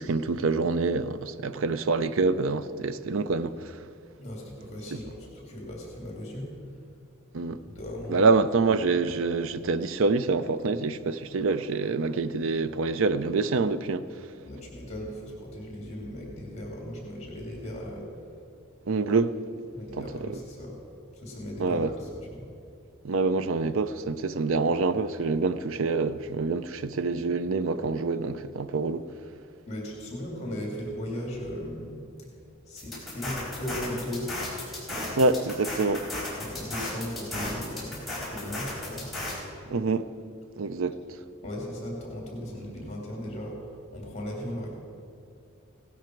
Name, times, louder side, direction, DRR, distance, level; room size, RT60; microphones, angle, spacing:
voice 1, 0.0-3.7 4.9-5.0 7.3-7.6 8.1-14.0 18.9-19.4 19.9-20.3 21.6-21.9 23.0-29.1 35.1-36.1 39.7-40.1 40.6-41.0, right 4 dB, 65° right, 0.5 m, -26 dB
voice 2, 4.2-6.8 7.7-8.3 14.4-18.5 19.7-20.7 21.1-22.5 29.7-32.3 32.7-34.3 36.4-38.0 38.3-39.1 41.4-44.7, left 1 dB, 30° left, 2.6 m, -37 dB
sound 1, 32.8-39.3, left 1 dB, ahead, 4.5 m, -35 dB
17.0 x 12.5 x 4.6 m
head